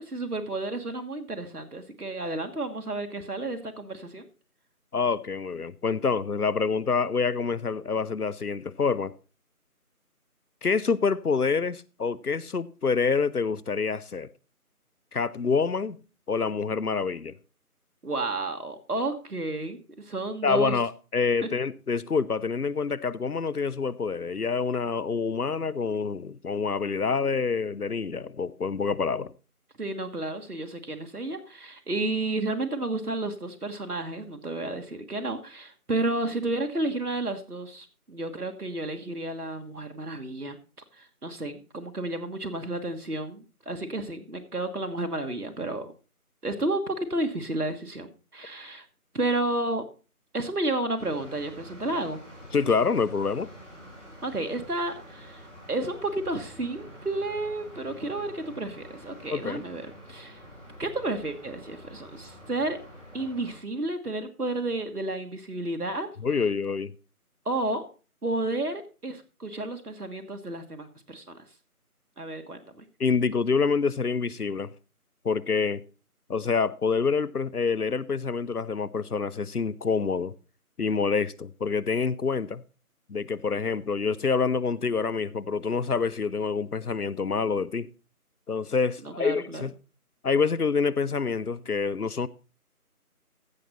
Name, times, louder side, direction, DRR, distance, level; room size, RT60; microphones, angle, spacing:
voice 1, 0.0-4.2 18.0-20.8 21.4-21.5 29.8-40.6 40.9-45.9 46.4-48.1 48.3-48.8 49.1-49.8 50.3-52.2 54.2-60.4 60.8-62.8 63.1-66.1 67.4-67.9 68.2-71.4 72.2-72.8 89.0-89.6, right 2 dB, 75° right, 1.6 m, -31 dB
voice 2, 4.9-9.1 10.6-14.3 15.1-16.0 16.3-17.4 20.4-29.3 52.5-53.5 59.3-59.6 66.2-66.9 73.0-74.7 75.2-75.8 76.3-80.3 80.8-82.6 83.1-87.9 88.5-89.7 90.2-92.3, left 5 dB, 80° left, 0.8 m, -27 dB
sound 1, 51.0-63.6, equal, 55° right, 5.9 m, -47 dB
15.0 x 6.4 x 4.2 m
figure-of-eight pair, 175°, 45 cm